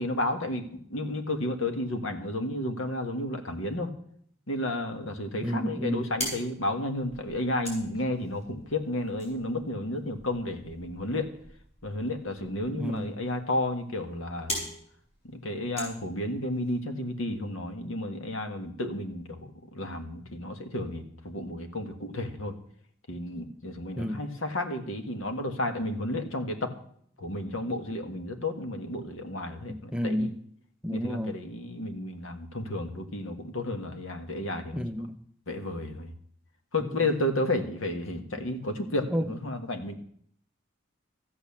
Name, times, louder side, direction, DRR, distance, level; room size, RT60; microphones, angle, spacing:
voice 1, 0.0-3.9 4.5-11.3 11.8-14.6 15.2-22.6 23.1-26.7 27.2-30.3 30.9-34.8 35.5-36.1 36.7-39.9, left 1 dB, 85° left, 6 dB, 1.6 m, -32 dB
voice 2, 5.4-6.1 12.7-13.1 24.0-24.3 29.7-30.4 30.8-31.3 34.7-35.2 36.8-36.9 39.1-39.2, equal, 5° right, 8 dB, 0.5 m, -31 dB
sound 1, 5.9-16.7, equal, 35° left, 5.9 m, -42 dB
13.5 x 8.7 x 7.2 m, 0.63 s
head